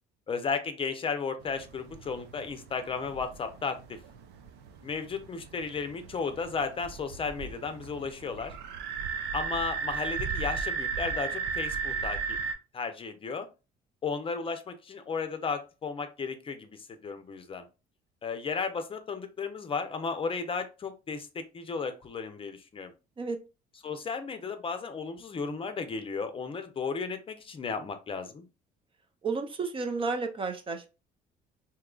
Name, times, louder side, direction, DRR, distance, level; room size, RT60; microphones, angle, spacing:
voice 1, 0.3-4.0 4.8-8.5 9.3-12.4 12.7-13.5 14.0-17.7 18.2-22.9 23.8-28.4, left 5 dB, 30° left, 8 dB, 0.6 m, -34 dB
sound 1, 1.4-12.6, right 5 dB, 85° right, 0.5 m, -36 dB
voice 2, 29.2-30.9, right 4 dB, 30° right, 6 dB, 0.5 m, -32 dB
3.6 x 2.8 x 2.3 m, 0.30 s
cardioid pair, 110°, 17 cm